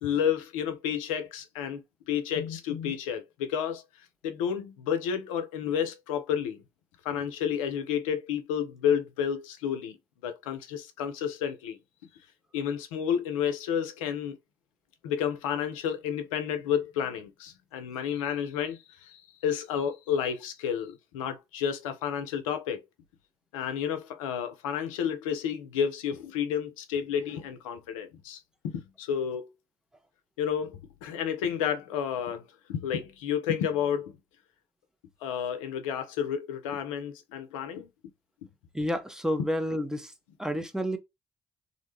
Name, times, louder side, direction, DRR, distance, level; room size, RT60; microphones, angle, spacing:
voice 1, 0.0-1.8 2.1-3.8 4.2-6.6 7.0-10.0 10.2-11.8 12.5-14.4 15.0-22.8 23.5-29.5 30.4-34.2 35.2-37.9, left 8 dB, 80° left, 0.5 m, -31 dB
voice 2, 38.7-40.1 40.4-41.0, equal, 5° right, 0.7 m, -30 dB
2.5 x 2.1 x 3.0 m
hypercardioid pair, 45°, 17 cm